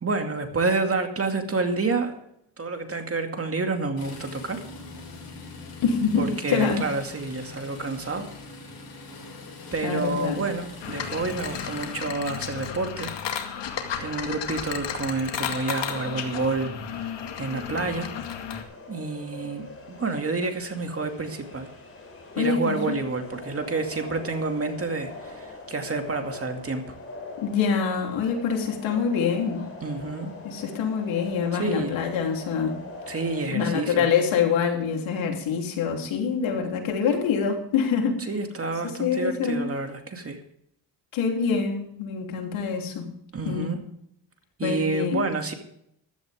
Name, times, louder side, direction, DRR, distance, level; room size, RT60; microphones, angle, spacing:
voice 1, 0.0-2.2 2.6-4.6 6.2-8.3 9.7-13.1 14.0-18.1 18.9-21.7 22.4-26.9 29.8-30.3 31.5-32.0 33.1-34.1 38.3-40.4 43.3-43.8 44.6-45.5, right 3 dB, 30° right, 5 dB, 2.4 m, -29 dB
sound 1, 4.0-12.1, left 3 dB, 50° left, 6.7 m, -42 dB
voice 2, 5.8-6.8 9.8-10.4 22.4-23.0 27.4-29.6 30.4-32.8 33.5-38.2 39.0-39.6 41.1-43.1 43.5-43.7 44.6-45.3, left 6 dB, 85° left, 2 dB, 3.5 m, -25 dB
sound 2, 10.8-18.6, left 8 dB, 70° left, 2.2 m, -33 dB
sound 3, 15.3-33.4, left 3 dB, 30° left, 4.5 m, -43 dB
15.0 x 12.5 x 3.6 m, 0.73 s
cardioid pair, 105°, 45 cm